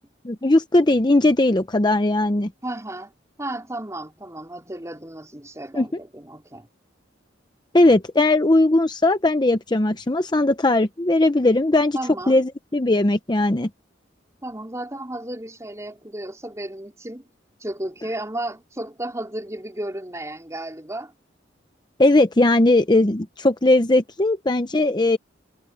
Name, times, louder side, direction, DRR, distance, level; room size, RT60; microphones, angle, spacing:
voice 1, 0.2-2.5 5.7-5.9 7.7-12.0 12.3-13.7 22.0-25.2, left 2 dB, 25° left, 0.7 m, -18 dB
voice 2, 2.6-3.1 3.4-6.7 11.9-12.4 14.4-17.3 17.6-21.1, right 1 dB, 15° right, 4.2 m, -33 dB
head